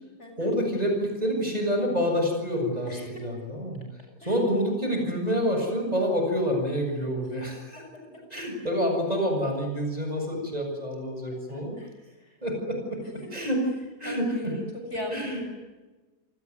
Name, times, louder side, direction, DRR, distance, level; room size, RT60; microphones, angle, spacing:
voice 1, 0.4-3.8 4.2-7.8 8.3-11.8 12.4-13.6 14.0-14.5 15.1-15.4, equal, 25° right, 3 dB, 7.4 m, -28 dB
voice 2, 2.9-3.2 4.2-4.4 7.8-8.2 11.5-11.9 12.2-12.3 14.0-15.6, left 1 dB, 45° left, 3 dB, 7.6 m, -39 dB
29.0 x 20.0 x 9.8 m, 1.2 s
omnidirectional pair, 1.7 m